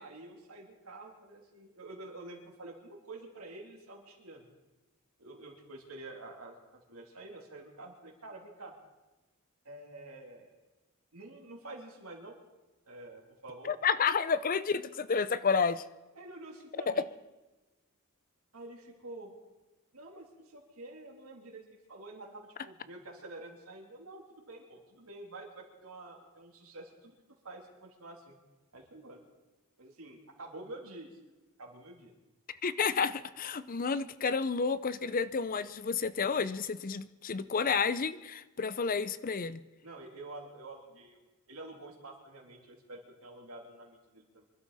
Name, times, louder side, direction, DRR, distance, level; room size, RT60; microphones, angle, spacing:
voice 1, 0.0-4.5 5.2-8.8 9.6-10.5 11.1-12.4 12.9-13.7 16.1-17.0 18.5-19.3 19.9-27.1 27.4-28.3 28.7-29.2 29.8-31.2 31.6-32.1 39.8-44.4, right 2 dB, 85° right, 0 dB, 3.2 m, -48 dB
voice 2, 13.6-15.8 16.9-17.0 32.6-39.6, left 5 dB, 40° left, 15 dB, 0.6 m, -30 dB
25.0 x 12.0 x 4.2 m, 1.1 s
head